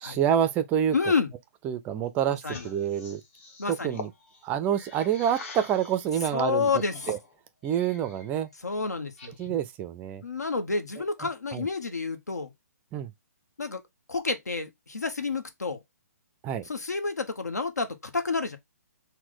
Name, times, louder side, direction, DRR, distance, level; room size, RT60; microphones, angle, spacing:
voice 1, 0.0-0.9 1.6-3.2 3.7-4.1 4.4-6.7 7.1-7.2 7.6-8.5 9.4-10.2 11.5-11.7 12.9-13.1 16.4-16.6, right 9 dB, 20° right, 0.4 m, -27 dB
voice 2, 0.9-1.3 2.4-2.7 3.6-4.0 6.3-7.1 8.6-9.4 10.2-12.5 13.6-13.8 14.1-15.8 16.6-18.6, left 4 dB, 75° left, 1.0 m, -29 dB
sound 1, 2.4-6.1 6.6-8.3 8.7-9.7, left 4 dB, 45° left, 1.2 m, -44 dB
5.9 x 2.2 x 3.7 m
figure-of-eight pair, 130°, 9 cm